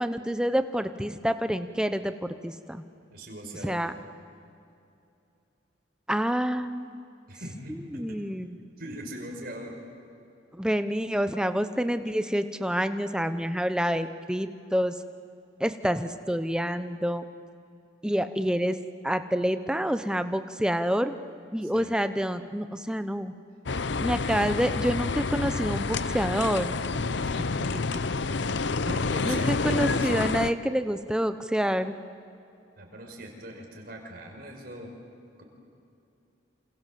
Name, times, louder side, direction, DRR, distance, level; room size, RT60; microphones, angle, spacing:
voice 1, 0.0-2.8 3.6-3.9 6.1-7.0 7.9-8.5 10.5-15.0 15.6-17.2 18.0-18.8 19.0-21.1 21.5-23.3 24.0-26.7 29.3-32.0, equal, 5° right, 10 dB, 0.9 m, -27 dB
voice 2, 3.1-3.9 7.3-8.2 8.8-9.8 21.6-22.0 27.2-28.0 28.8-29.5 30.0-30.1 32.8-34.9 35.4-35.5, equal, 50° right, 1 dB, 5.4 m, -40 dB
sound 1, 23.7-30.5, left 4 dB, 65° left, 0.7 m, -28 dB
28.0 x 28.0 x 7.6 m, 2.7 s
head